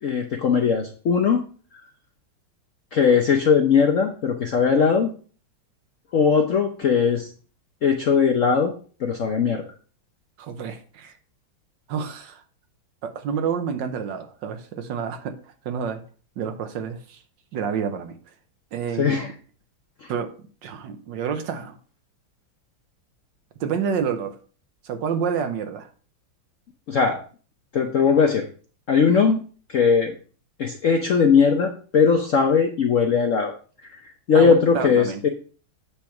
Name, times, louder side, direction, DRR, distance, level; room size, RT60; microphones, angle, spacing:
voice 1, 0.0-1.4 2.9-5.1 6.1-7.3 7.8-8.7 9.0-9.6 19.0-19.3 20.0-20.1 26.9-27.2 27.7-28.5 28.9-29.4 29.7-30.2 30.6-33.5 34.3-35.3, left 6 dB, 65° left, 0.7 m, -19 dB
voice 2, 10.4-11.1 11.9-12.4 13.0-16.0 16.4-17.2 17.5-18.2 18.7-19.3 20.1-20.3 20.6-21.8 23.6-24.4 24.8-25.9 34.3-35.3, right 7 dB, 70° right, 1.4 m, -29 dB
8.5 x 3.4 x 5.8 m
omnidirectional pair, 2.2 m